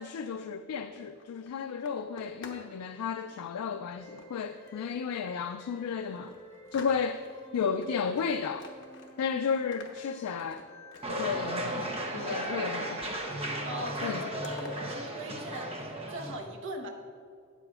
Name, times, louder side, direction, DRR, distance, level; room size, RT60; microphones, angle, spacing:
voice 1, 0.0-6.3 6.7-7.2 7.5-8.7 9.2-10.7 11.1-13.2 14.0-14.3, left 6 dB, 75° left, 0.3 m, -33 dB
sound 1, 0.7-2.7 3.0-3.4 4.2-5.0 5.4-5.5 5.9-7.4 7.8-9.3 9.5-12.7 13.0-13.6 13.9-14.7, left 4 dB, 55° left, 1.0 m, -50 dB
sound 2, 4.0-14.1, equal, 15° left, 2.0 m, -53 dB
sound 3, 11.0-16.4, right 1 dB, 25° right, 0.9 m, -35 dB
voice 2, 13.6-16.9, equal, 60° right, 1.0 m, -41 dB
13.0 x 8.9 x 2.4 m
head